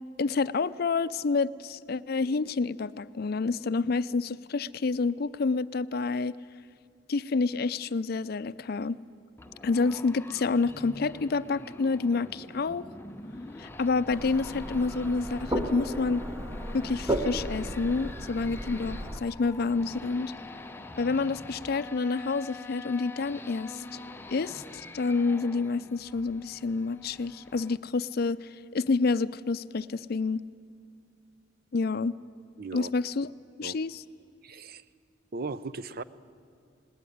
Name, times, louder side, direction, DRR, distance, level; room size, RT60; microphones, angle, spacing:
voice 1, 0.2-6.3 7.1-9.0 9.6-12.9 13.6-16.2 16.7-20.3 21.0-24.0 24.3-30.4 31.7-32.1 32.7-33.3 33.6-34.0, left 4 dB, 55° left, 16 dB, 0.5 m, -28 dB
sound 1, 9.4-27.8, left 2 dB, 10° left, 0.7 m, -45 dB
sound 2, 14.1-19.2, right 1 dB, 15° right, 1.3 m, -34 dB
voice 2, 32.6-32.9 33.6-33.8 34.4-34.8 35.3-36.0, right 3 dB, 55° right, 16 dB, 0.6 m, -37 dB
19.5 x 18.0 x 9.4 m, 2.4 s
head